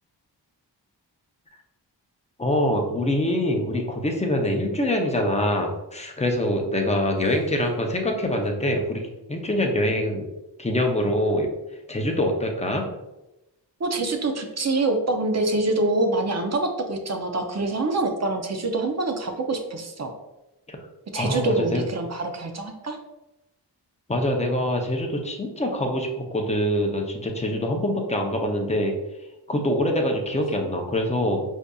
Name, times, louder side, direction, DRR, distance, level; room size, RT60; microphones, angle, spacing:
voice 1, 2.4-10.3 10.6-11.5 11.9-12.8 20.7-20.8 21.1-21.8 24.1-28.9 29.5-31.4, left 1 dB, 15° left, 2 dB, 0.5 m, -24 dB
voice 2, 13.8-20.1 21.1-23.0, right 2 dB, 40° right, 4 dB, 0.5 m, -25 dB
4.8 x 2.7 x 2.3 m, 0.96 s
wide cardioid pair, 95°, 43 cm